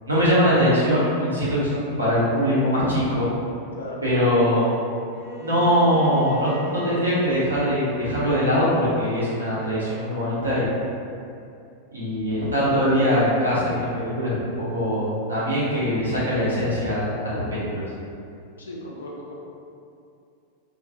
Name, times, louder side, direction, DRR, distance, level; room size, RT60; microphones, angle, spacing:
voice 1, 0.1-3.3 4.0-4.7 5.4-10.7 11.9-17.9, equal, 80° right, -9 dB, 0.8 m, -22 dB
Bowed string instrument, 5.1-10.1, equal, 30° left, 1.0 m, -40 dB
voice 2, 18.6-19.3, left 1 dB, 70° left, -3 dB, 0.4 m, -36 dB
2.2 x 2.2 x 2.7 m, 2.5 s
figure-of-eight pair, 90°, 0 cm